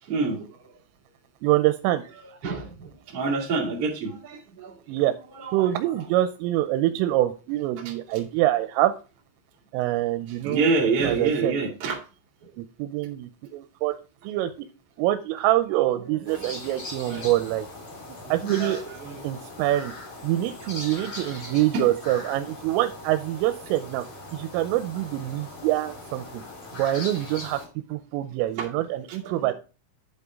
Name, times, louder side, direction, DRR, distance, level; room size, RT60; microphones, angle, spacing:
voice 1, 0.0-0.7 2.2-5.1 5.3-5.9 7.8-8.2 10.3-12.0 12.4-12.5 15.7-16.3 17.1-17.3 18.3-19.2 20.7-20.9 21.4-21.8 28.6-29.5, right 4 dB, 40° right, 2.7 m, -29 dB
voice 2, 1.4-2.0 4.9-5.1 5.5-8.9 9.7-10.7 11.0-11.5 12.6-13.9 14.2-14.5 15.0-17.7 18.3-18.8 19.2-19.9 20.2-24.0 24.3-26.4 26.8-27.6 27.9-29.5, right 14 dB, 85° right, 3.2 m, -25 dB
sound 1, 16.3-27.7, left 2 dB, 35° left, 2.3 m, -40 dB
11.0 x 6.9 x 3.6 m
omnidirectional pair, 5.9 m